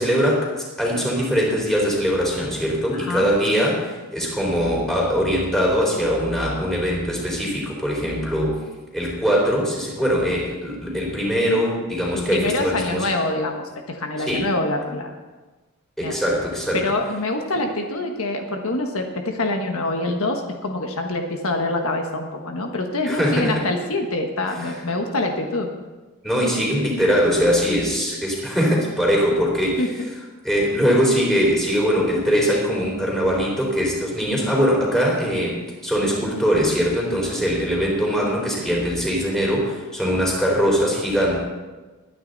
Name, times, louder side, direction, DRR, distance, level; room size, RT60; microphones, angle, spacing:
voice 1, 0.0-8.5 8.9-13.1 14.2-14.4 16.0-16.8 23.0-23.6 24.7-24.8 26.2-29.9 30.4-35.5 35.8-41.4, equal, ahead, -3 dB, 4.0 m, -21 dB
voice 2, 2.9-3.3 12.1-15.1 16.0-16.2 16.7-25.7 29.8-30.1, left 2 dB, 70° left, 3 dB, 1.4 m, -25 dB
21.0 x 9.6 x 4.1 m, 1.2 s
head